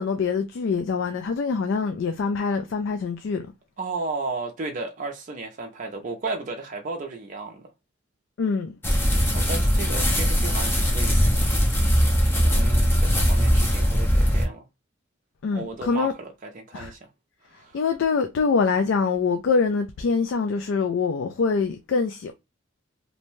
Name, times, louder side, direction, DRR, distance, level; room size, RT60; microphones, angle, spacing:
voice 1, 0.0-3.5 8.4-8.8 15.4-16.1 16.7-16.9 17.7-22.3, left 5 dB, 60° left, 0.3 m, -24 dB
voice 2, 3.8-7.7 9.3-11.6 12.3-14.7 15.5-17.0 17.5-17.8, right 3 dB, 40° right, 0.5 m, -34 dB
sound 1, 8.8-14.5, equal, 10° left, 0.6 m, -20 dB
2.6 x 2.1 x 3.0 m
head